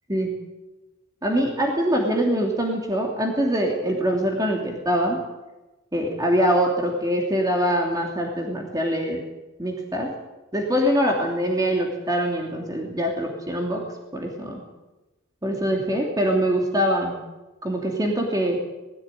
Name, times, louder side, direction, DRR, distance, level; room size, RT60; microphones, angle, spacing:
voice 1, 1.2-5.2 5.9-9.2 9.6-10.1 10.5-13.8 14.1-14.6 15.4-17.2 17.6-18.6, equal, 20° right, 0 dB, 3.0 m, -23 dB
20.5 x 15.5 x 9.3 m, 1.1 s
head